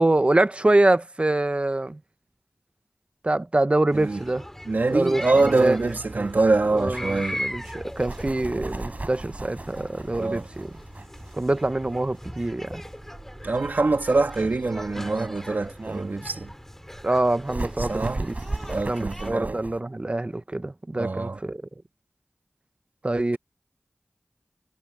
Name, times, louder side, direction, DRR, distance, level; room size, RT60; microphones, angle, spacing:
voice 1, 0.0-2.0 3.2-4.4 4.9-5.8 6.7-10.7 11.3-12.8 17.0-18.3 18.9-21.6 23.0-23.4, right 2 dB, 35° right, 0.9 m, -24 dB
sound 1, 3.9-19.3, equal, 10° left, 5.7 m, -39 dB
voice 2, 4.7-7.5 8.6-8.7 10.2-10.5 13.4-16.5 17.8-18.2 18.7-19.6 21.0-21.4, right 3 dB, 70° right, 2.5 m, -24 dB
sound 2, 5.4-19.8, right 2 dB, 55° right, 5.1 m, -37 dB
wide cardioid pair, 45°, 3 cm